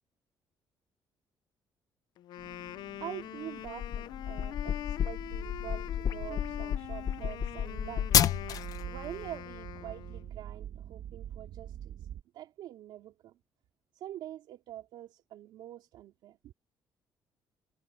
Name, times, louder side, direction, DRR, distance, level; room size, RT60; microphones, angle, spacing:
Wind instrument woodwind instrument, 2.2-10.3, left 13 dB, 65° left, 0.5 m, -43 dB
sound 1, 2.4-12.2, right 10 dB, 55° right, 1.0 m, -46 dB
voice 1, 2.6-8.1 8.6-12.1 12.3-13.4 13.9-16.5, right 12 dB, 80° right, 3.1 m, -45 dB
sound 2, 3.7-8.8, left 9 dB, 50° left, 1.0 m, -30 dB
cardioid pair, 175°, 8 cm